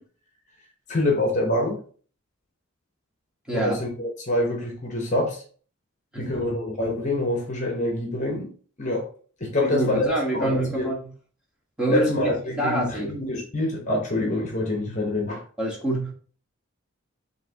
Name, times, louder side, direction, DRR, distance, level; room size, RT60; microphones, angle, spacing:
voice 1, 0.9-1.8 3.5-5.4 6.2-8.5 8.8-9.1 9.4-10.9 11.9-15.4, left 1 dB, 35° left, 0.9 m, -26 dB
voice 2, 9.5-11.1 11.8-12.1 12.5-13.1 15.6-16.1, right 1 dB, 5° right, 1.1 m, -26 dB
5.7 x 2.7 x 2.8 m
head